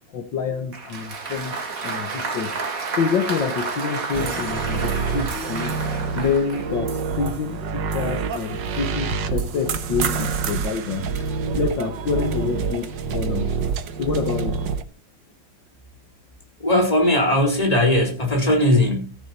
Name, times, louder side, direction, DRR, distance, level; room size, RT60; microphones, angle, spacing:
voice 1, 0.1-2.6 3.0-5.8 6.1-11.3 11.6-13.5 14.0-14.6, left 5 dB, 70° left, 2.0 m, -27 dB
Applause, 0.7-6.7, right 4 dB, 45° right, 2.3 m, -30 dB
sound 1, 4.1-14.8, right 5 dB, 70° right, 1.7 m, -27 dB
voice 2, 16.6-19.2, left 1 dB, 20° left, 4.0 m, -19 dB
14.5 x 10.5 x 4.3 m
omnidirectional pair, 2.1 m